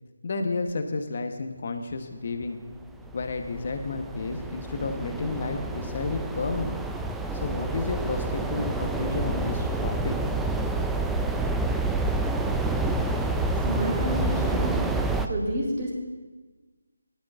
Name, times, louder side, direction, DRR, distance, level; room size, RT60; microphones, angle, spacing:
voice 1, 0.2-2.6 3.1-6.7 7.4-10.1 10.4-10.5, left 3 dB, 40° left, 6 dB, 1.1 m, -31 dB
sound 1, 2.8-15.3, right 2 dB, 5° right, 0.3 m, -28 dB
voice 2, 13.6-14.8 15.3-15.9, equal, 25° right, -3 dB, 3.4 m, -29 dB
17.5 x 11.5 x 2.6 m, 1.3 s
figure-of-eight pair, 165°, 0 cm